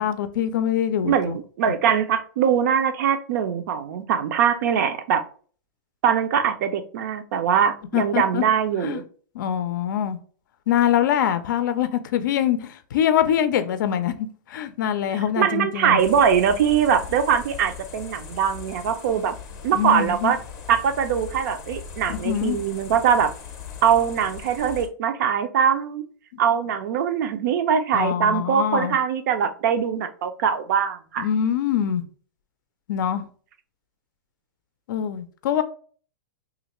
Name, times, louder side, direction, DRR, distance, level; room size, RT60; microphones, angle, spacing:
voice 1, 0.0-1.4 7.9-8.4 8.8-9.0 9.4-10.2 10.7-14.1 14.5-16.0 19.7-20.3 22.1-22.6 27.9-29.0 31.2-32.0 32.9-33.2 34.9-35.6, left 9 dB, 70° left, 0.4 m, -24 dB
voice 2, 1.0-5.2 6.0-9.0 15.4-19.3 19.6-20.4 20.7-23.3 23.8-26.0 26.4-31.3, right 8 dB, 60° right, 0.5 m, -22 dB
sound 1, 16.0-24.9, left 7 dB, 25° left, 0.6 m, -39 dB
3.1 x 2.5 x 2.9 m
hypercardioid pair, 145°, 11 cm